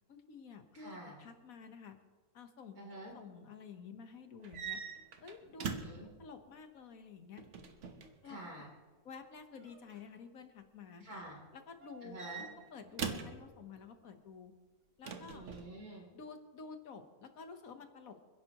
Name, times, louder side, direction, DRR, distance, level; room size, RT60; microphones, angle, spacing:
voice 1, 0.1-1.9 2.3-2.8 3.1-4.8 5.2-7.4 8.2-8.6 9.0-11.0 11.5-12.2 12.7-14.5 15.0-15.5 16.1-18.3, left 5 dB, 65° left, 7 dB, 1.5 m, -51 dB
voice 2, 0.7-1.2 2.8-3.1 5.6-6.1 8.2-8.7 11.0-11.4 12.0-12.4 15.3-16.1, right 1 dB, 70° right, -1 dB, 3.7 m, -48 dB
sound 1, 4.4-6.1 7.4-8.1 9.6-10.0 11.8-13.4 15.0-15.7, right 6 dB, 55° right, 1.3 m, -42 dB
27.5 x 11.0 x 3.0 m, 1.4 s
omnidirectional pair, 1.6 m